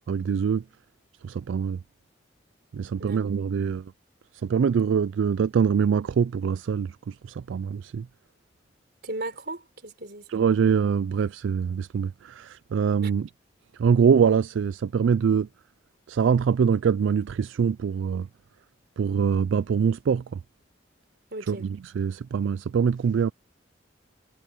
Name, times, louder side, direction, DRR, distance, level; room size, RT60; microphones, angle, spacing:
voice 1, 0.1-0.6 1.2-1.8 2.7-3.9 4.3-8.1 10.3-13.3 13.7-15.5 16.1-18.3 19.0-20.4 21.5-23.3, right 6 dB, 70° right, 0.3 m, -24 dB
voice 2, 3.0-3.3 9.0-10.3 13.0-13.1 21.3-21.6, right 2 dB, 55° right, 4.0 m, -36 dB
head